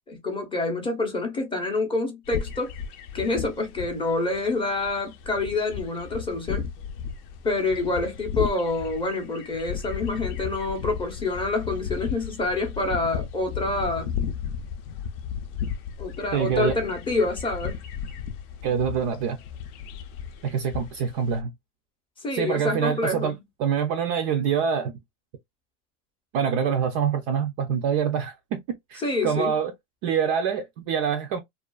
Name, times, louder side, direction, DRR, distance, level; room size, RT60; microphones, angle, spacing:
voice 1, 0.1-2.7 3.1-6.7 7.4-14.1 16.0-17.8 22.2-23.4 29.0-29.5, left 2 dB, 10° left, 0.6 m, -27 dB
sound 1, 2.3-21.4, left 7 dB, 50° left, 0.6 m, -35 dB
voice 2, 16.3-16.8 18.6-19.4 20.4-21.5 22.3-23.3 23.6-24.9 26.3-28.6 28.9-29.7 30.0-31.4, right 7 dB, 35° right, 0.4 m, -25 dB
2.4 x 2.4 x 2.2 m
supercardioid pair, 130°, 44 cm